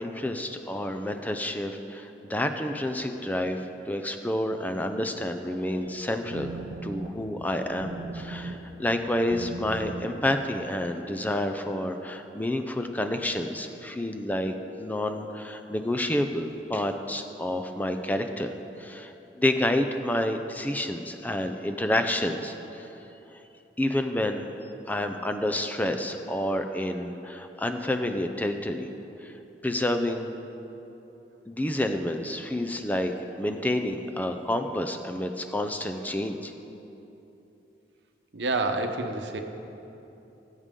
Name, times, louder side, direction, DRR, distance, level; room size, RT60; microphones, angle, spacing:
voice 1, 0.0-22.9 23.8-24.5 24.9-28.9 29.2-29.3 29.6-30.3 31.5-36.5, left 1 dB, 10° left, 6 dB, 0.5 m, -29 dB
sound 1, 5.7-10.8, right 2 dB, 50° right, 0.6 m, -40 dB
voice 2, 38.3-39.4, right 2 dB, 75° right, 5 dB, 0.9 m, -28 dB
19.0 x 8.1 x 3.8 m, 2.9 s
head